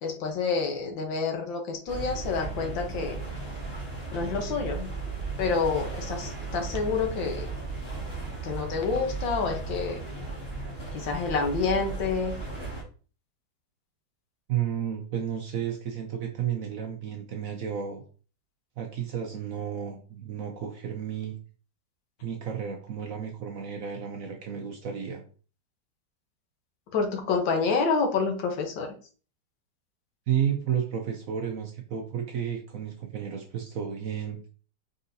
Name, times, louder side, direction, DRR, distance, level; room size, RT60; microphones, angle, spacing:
voice 1, 0.0-3.2 4.1-4.9 5.4-7.5 8.4-10.0 10.9-12.4 26.9-28.9, left 4 dB, 85° left, 3 dB, 1.8 m, -28 dB
sound 1, 1.9-12.8, right 4 dB, 35° left, 2.2 m, -35 dB
voice 2, 14.5-18.0 18.8-21.4 22.2-25.2 30.3-34.4, right 8 dB, 65° right, 3 dB, 0.9 m, -32 dB
4.7 x 3.9 x 2.7 m, 0.38 s
omnidirectional pair, 2.0 m